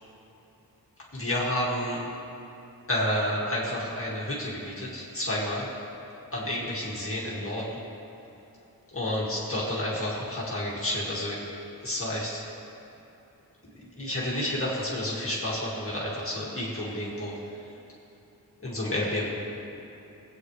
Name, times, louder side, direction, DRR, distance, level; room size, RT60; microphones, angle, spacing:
voice 1, 1.2-2.0 2.9-5.7 6.3-7.6 8.9-11.4 11.8-12.4 14.0-17.3 18.6-19.3, left 1 dB, 35° left, -6 dB, 2.0 m, -30 dB
20.0 x 8.6 x 3.2 m, 2.9 s
wide cardioid pair, 110°, 36 cm